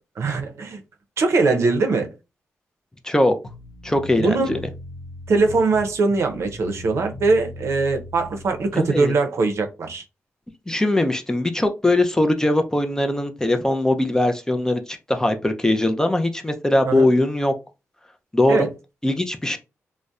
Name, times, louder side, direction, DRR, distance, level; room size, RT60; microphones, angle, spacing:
voice 1, 0.2-0.8 1.2-2.1 4.2-4.6 5.3-10.0 16.9-17.1 18.5-18.7, right 3 dB, 65° right, 0.5 m, -21 dB
voice 2, 3.0-3.4 3.8-4.6 8.7-9.1 10.7-17.5 18.3-18.7 19.0-19.6, left 1 dB, 10° left, 0.4 m, -21 dB
sound 1, 3.4-8.8, left 1 dB, 75° left, 0.9 m, -39 dB
2.6 x 2.0 x 2.3 m
cardioid pair, 80°, 5 cm